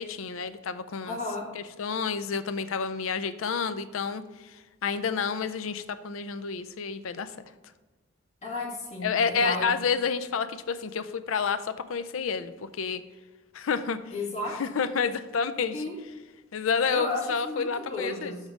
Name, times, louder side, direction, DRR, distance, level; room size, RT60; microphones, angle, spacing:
voice 1, 0.0-1.2 1.5-4.6 4.8-7.3 9.0-13.0 13.5-14.0 14.5-15.8 16.5-18.4, left 5 dB, 80° left, 12 dB, 0.5 m, -29 dB
voice 2, 1.1-1.4 8.4-9.7 14.1-14.5 15.7-16.0 16.9-18.5, left 2 dB, 35° left, -3 dB, 2.0 m, -33 dB
7.3 x 3.8 x 6.0 m, 1.2 s
head